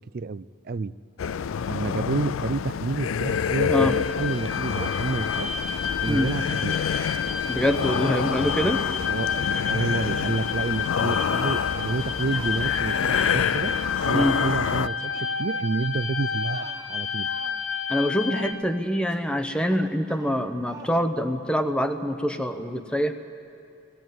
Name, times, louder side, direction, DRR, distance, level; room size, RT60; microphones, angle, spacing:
voice 1, 0.1-0.9 1.7-5.6 6.0-6.8 9.1-9.3 9.7-13.7 14.0-17.3, right 4 dB, 50° right, 17 dB, 0.4 m, -29 dB
sound 1, 1.2-14.9, left 7 dB, 90° left, 0.4 m, -27 dB
sound 2, 3.3-18.5, left 6 dB, 70° left, 1.2 m, -30 dB
sound 3, 4.8-5.1 5.5-5.8 6.1-6.6 7.2-7.5 8.0-8.6 9.2-9.5 10.0-10.6 10.9-11.1 12.3-13.4 13.9-14.4 15.1-15.3 15.7-15.9 16.4-17.6 17.9-18.2 19.1-19.4 19.6-20.4 20.6-21.0, right 2 dB, 20° right, 1.3 m, -47 dB
voice 2, 7.5-8.8 14.1-14.4 17.9-23.2, equal, 5° left, 8 dB, 0.8 m, -25 dB
18.5 x 15.5 x 9.2 m, 2.5 s
head